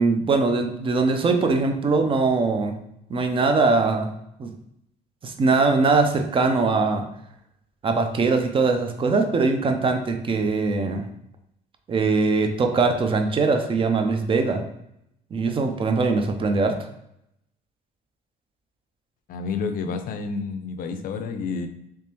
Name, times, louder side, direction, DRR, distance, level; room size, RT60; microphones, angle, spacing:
voice 1, 0.0-2.8 3.1-4.1 4.4-4.5 5.2-7.0 7.8-11.0 11.9-14.6 15.3-16.8, right 3 dB, 30° right, 6 dB, 0.5 m, -21 dB
voice 2, 19.3-21.7, left 5 dB, 55° left, 8 dB, 0.5 m, -29 dB
3.5 x 3.0 x 2.9 m, 0.79 s
cardioid pair, 110°, 17 cm